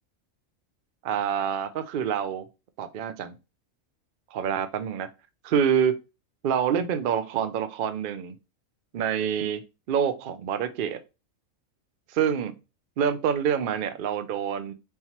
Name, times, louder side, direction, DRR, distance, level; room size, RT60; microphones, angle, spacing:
voice 1, 1.0-2.4 2.8-3.3 4.3-5.1 5.4-6.0 6.4-8.3 8.9-9.6 9.9-11.0 12.1-12.5 13.0-14.7, right 8 dB, 60° right, 0.5 m, -26 dB
4.2 x 3.8 x 2.9 m
omnidirectional pair, 1.4 m